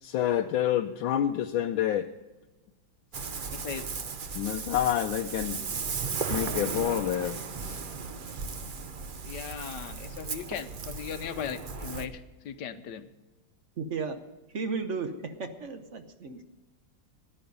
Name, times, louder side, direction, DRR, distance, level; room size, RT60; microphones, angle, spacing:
voice 1, 0.0-2.1 4.3-5.6 6.3-7.4, left 11 dB, 85° left, 4 dB, 1.4 m, -28 dB
Ocean, 3.1-12.1, right 5 dB, 75° right, 0.4 m, -36 dB
voice 2, 3.5-3.9 9.2-13.1, left 8 dB, 65° left, 10 dB, 1.3 m, -38 dB
voice 3, 13.8-14.2 14.5-16.4, right 4 dB, 50° right, 8 dB, 1.0 m, -34 dB
14.0 x 11.5 x 5.3 m, 1.2 s
omnidirectional pair, 2.1 m